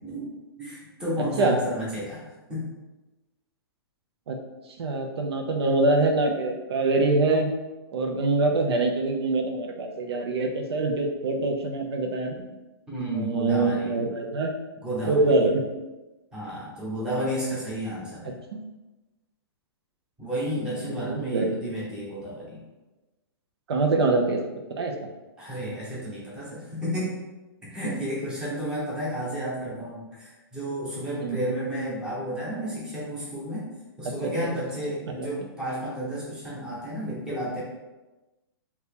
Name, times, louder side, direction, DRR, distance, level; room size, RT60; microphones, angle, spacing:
voice 1, 0.6-2.7 12.9-13.9 14.8-15.3 16.3-18.4 20.2-22.6 25.4-27.2 27.6-33.7 34.0-37.6, equal, 5° right, -8 dB, 0.9 m, -32 dB
voice 2, 1.2-1.6 4.3-4.4 4.8-7.5 7.9-12.4 13.1-14.5 15.1-15.6 18.5-18.6 20.7-21.7 23.7-24.4 24.8-24.9 31.2-31.4 34.1-34.5 35.2-35.3, right 2 dB, 80° right, 3 dB, 0.6 m, -24 dB
2.9 x 2.8 x 3.6 m, 1.1 s
hypercardioid pair, 160°, 13 cm